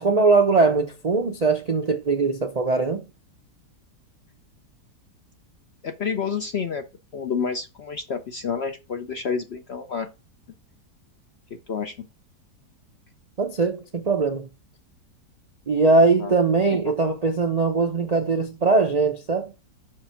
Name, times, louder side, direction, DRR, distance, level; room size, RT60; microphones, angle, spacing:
voice 1, 0.0-3.0 13.4-14.5 15.7-19.5, right 3 dB, 85° right, 0.3 m, -21 dB
voice 2, 5.8-6.8 7.1-10.1 11.7-11.9 16.2-16.3 16.8-16.9, left 6 dB, 60° left, 0.6 m, -29 dB
6.0 x 4.9 x 5.7 m
omnidirectional pair, 1.8 m